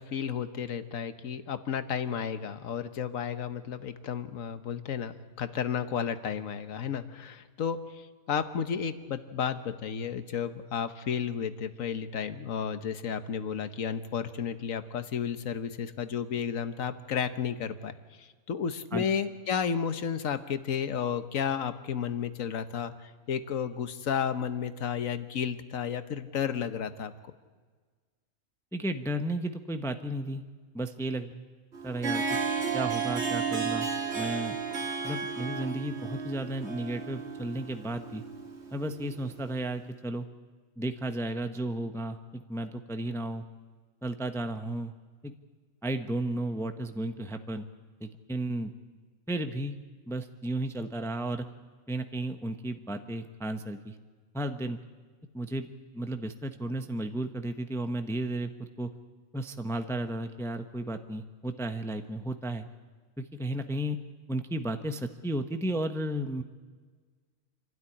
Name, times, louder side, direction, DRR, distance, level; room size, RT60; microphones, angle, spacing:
voice 1, 0.0-27.1, left 7 dB, 75° left, 11 dB, 1.5 m, -32 dB
voice 2, 28.7-30.4 30.7-31.4 31.8-32.2 32.7-33.9 34.1-34.6 35.0-38.2 38.7-40.3 40.8-43.4 44.0-44.9 45.2-45.3 45.8-47.7 48.0-48.7 49.3-49.7 50.1-51.4 51.9-54.0 54.3-54.8 55.3-55.7 55.9-58.9 59.3-62.6 63.2-64.0 64.3-66.4, right 1 dB, ahead, 7 dB, 0.8 m, -33 dB
Harp, 31.7-39.5, right 5 dB, 55° right, 2.0 m, -33 dB
27.5 x 12.5 x 9.8 m, 1.5 s
omnidirectional pair, 1.4 m